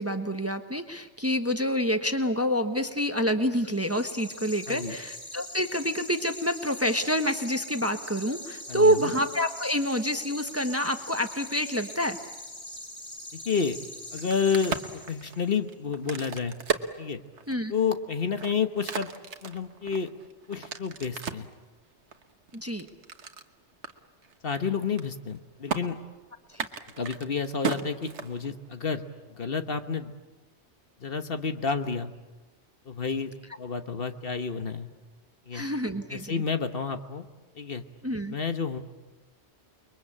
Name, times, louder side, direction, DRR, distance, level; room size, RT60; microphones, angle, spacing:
voice 1, 0.0-12.2 17.5-17.7 22.5-22.9 26.5-26.7 35.5-36.4 38.0-38.3, equal, 15° right, 7 dB, 1.2 m, -27 dB
sound 1, 3.6-15.5, left 1 dB, 80° left, 3.6 m, -42 dB
voice 2, 8.7-9.1 13.4-13.8 14.1-16.5 17.0-17.2 17.7-19.1 19.4-20.1 20.5-21.5 24.4-26.0 27.0-29.0 29.3-30.1 31.0-32.1 32.9-33.3 33.6-34.9 35.5-35.6 36.1-37.2 37.5-37.8 38.3-38.8, left 5 dB, 55° left, 8 dB, 1.4 m, -30 dB
Crack, 14.1-17.7 18.2-21.5 22.1-23.5 23.8-23.9 24.2-24.6 24.8-25.4 25.7-25.8 26.5-28.7, right 6 dB, 75° right, 1.5 m, -35 dB
29.5 x 22.0 x 8.7 m, 1.2 s
omnidirectional pair, 1.2 m